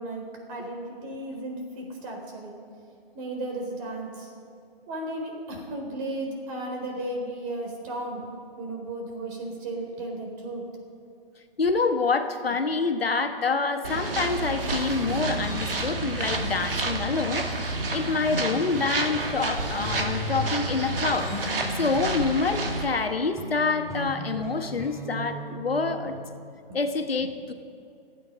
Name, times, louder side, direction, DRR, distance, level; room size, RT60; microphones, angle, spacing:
voice 1, 0.0-2.6 3.1-4.3 4.9-8.3 8.6-10.6 26.0-26.1, right 1 dB, 35° right, 2 dB, 4.2 m, -34 dB
voice 2, 11.6-17.5 17.9-21.3 21.8-26.2 26.7-27.5, left 4 dB, 80° left, 7 dB, 1.4 m, -27 dB
sound 1, 13.8-22.9, right 2 dB, 70° right, 2.4 m, -30 dB
sound 2, 14.9-26.2, equal, 10° right, 3.5 m, -37 dB
28.5 x 9.5 x 5.4 m, 2.5 s
figure-of-eight pair, 130°, 29 cm